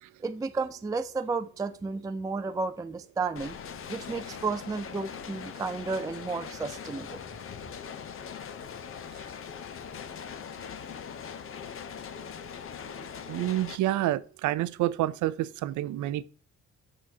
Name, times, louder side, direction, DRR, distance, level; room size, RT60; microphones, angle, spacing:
voice 1, 0.2-3.5 3.9-7.2, right 4 dB, 10° right, 0.4 m, -32 dB
sound 1, 3.4-13.8, left 7 dB, 45° left, 0.7 m, -41 dB
voice 2, 13.3-16.2, right 14 dB, 75° right, 0.5 m, -28 dB
6.3 x 6.1 x 2.7 m
cardioid pair, 90°, 30 cm